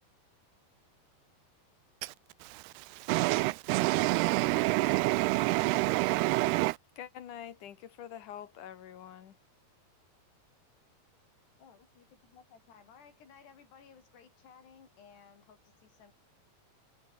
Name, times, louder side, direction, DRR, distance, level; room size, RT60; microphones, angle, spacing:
voice 1, 2.5-6.8, right 21 dB, 85° right, 2.6 m, -27 dB
voice 2, 7.0-9.3, left 10 dB, 55° left, 3.1 m, -45 dB
voice 3, 11.6-16.1, left 7 dB, 85° left, 6.3 m, -57 dB
omnidirectional pair, 4.7 m